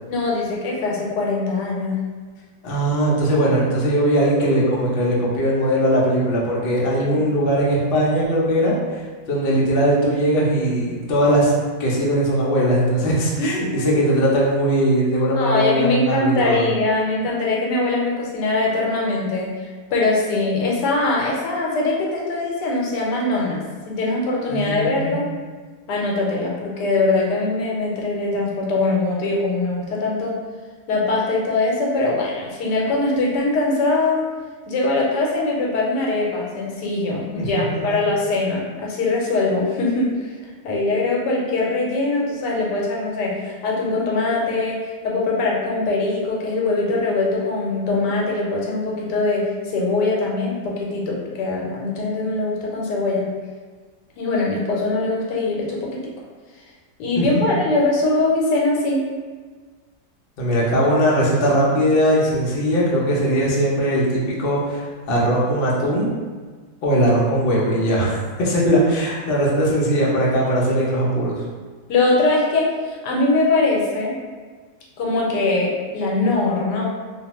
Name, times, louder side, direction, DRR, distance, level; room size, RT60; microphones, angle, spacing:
voice 1, 0.1-2.0 7.0-7.3 13.4-14.1 15.3-19.5 19.9-23.6 23.9-25.3 25.9-30.3 30.9-34.2 34.7-40.3 40.6-53.2 54.2-56.0 57.0-59.0 71.9-74.2 75.0-76.9, left 2 dB, 85° left, -3 dB, 1.2 m, -22 dB
voice 2, 2.6-11.5 11.8-16.6 24.5-25.2 37.3-38.0 57.2-57.3 60.4-66.1 66.8-71.4, equal, 60° left, -5 dB, 0.6 m, -20 dB
2.7 x 2.1 x 2.9 m, 1.4 s
omnidirectional pair, 1.8 m